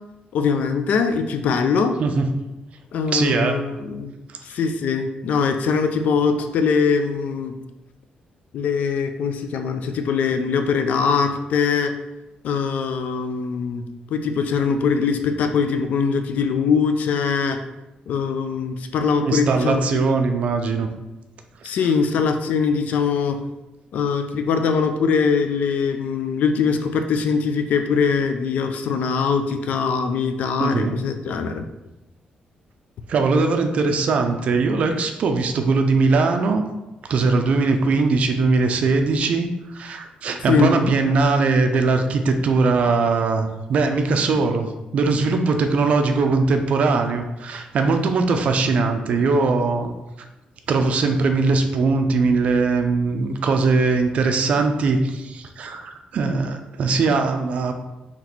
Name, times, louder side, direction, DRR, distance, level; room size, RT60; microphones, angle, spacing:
voice 1, 0.3-2.0 2.9-4.1 4.4-7.5 8.5-11.9 12.4-13.8 14.1-17.6 18.1-20.2 20.8-20.9 21.6-23.4 23.9-31.6 40.5-40.7, left 5 dB, 65° left, 7 dB, 0.4 m, -22 dB
voice 2, 2.0-2.4 3.1-3.6 4.3-4.4 19.2-20.9 21.6-21.9 30.6-31.0 33.1-36.6 37.0-49.9 50.7-57.7, right 3 dB, 50° right, 6 dB, 0.4 m, -20 dB
4.1 x 2.9 x 4.3 m, 0.98 s
wide cardioid pair, 180°, 3 cm